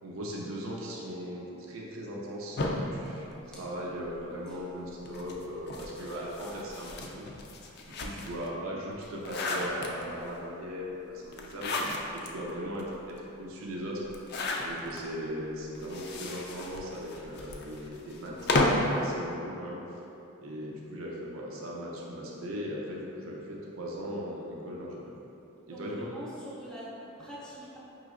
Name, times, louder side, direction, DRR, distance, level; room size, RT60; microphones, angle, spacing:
voice 1, 0.0-7.4 8.0-14.1 14.6-19.8 20.4-25.1 25.7-26.1, equal, 80° right, -3 dB, 0.6 m, -38 dB
sound 1, 2.6-4.2 5.0-8.5 8.9-10.3 11.3-12.3 12.8-12.9 13.1-13.2 14.1-15.0 15.8-19.0, left 2 dB, 50° left, 0.3 m, -33 dB
voice 2, 3.3-3.7 25.6-27.8, equal, 5° left, -8 dB, 0.7 m, -44 dB
5.4 x 3.1 x 2.4 m, 2.9 s
head